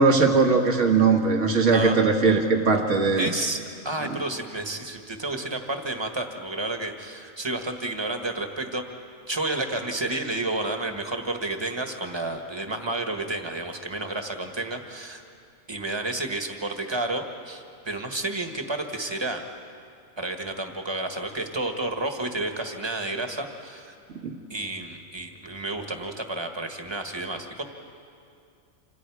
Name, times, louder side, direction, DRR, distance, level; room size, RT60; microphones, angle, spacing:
voice 1, 0.0-3.3 24.2-24.4, right 4 dB, 65° right, 3 dB, 1.9 m, -20 dB
voice 2, 3.2-3.6 3.8-8.8 9.3-15.2 15.7-19.4 20.2-23.9 24.5-27.6, right 2 dB, 20° right, 4 dB, 1.5 m, -31 dB
27.0 x 26.5 x 4.9 m, 2.5 s
omnidirectional pair, 1.4 m